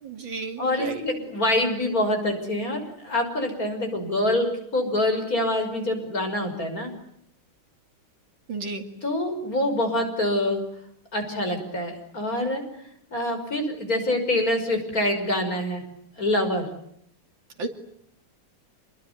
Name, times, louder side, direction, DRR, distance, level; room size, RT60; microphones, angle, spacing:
voice 1, 0.0-1.0 8.5-8.9 17.6-17.7, right 3 dB, 65° right, 6 dB, 3.4 m, -32 dB
voice 2, 0.6-6.9 9.0-10.6 11.1-12.6 13.1-15.8 16.2-16.7, left 1 dB, 40° left, 5 dB, 6.2 m, -25 dB
28.0 x 22.0 x 9.6 m, 0.72 s
omnidirectional pair, 2.3 m